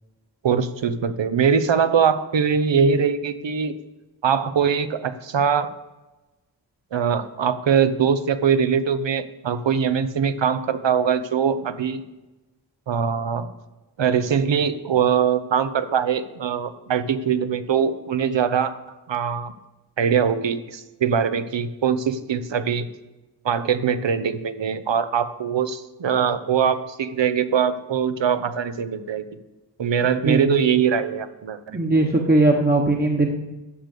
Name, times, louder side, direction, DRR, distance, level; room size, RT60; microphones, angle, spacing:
voice 1, 0.4-3.8 4.2-5.7 6.9-12.0 12.9-13.5 14.0-18.7 19.1-19.5 20.0-22.9 23.4-29.2 29.8-31.8, right 7 dB, 70° right, 11 dB, 0.9 m, -22 dB
voice 2, 31.7-33.3, right 2 dB, 20° right, 1 dB, 1.2 m, -19 dB
9.9 x 6.8 x 8.4 m, 1.1 s
wide cardioid pair, 75°, 46 cm